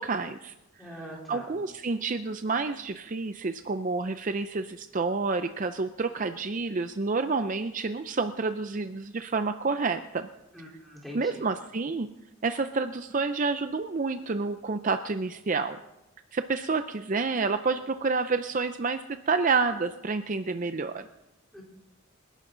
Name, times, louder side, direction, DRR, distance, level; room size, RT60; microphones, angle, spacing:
voice 1, 0.0-1.0 1.3-10.3 11.1-12.1 12.4-15.8 16.3-21.1, right 4 dB, 40° right, 9 dB, 0.5 m, -29 dB
voice 2, 0.8-1.6 10.5-11.4 21.5-21.6, equal, ahead, -3 dB, 3.9 m, -43 dB
28.0 x 11.5 x 3.9 m, 0.97 s
head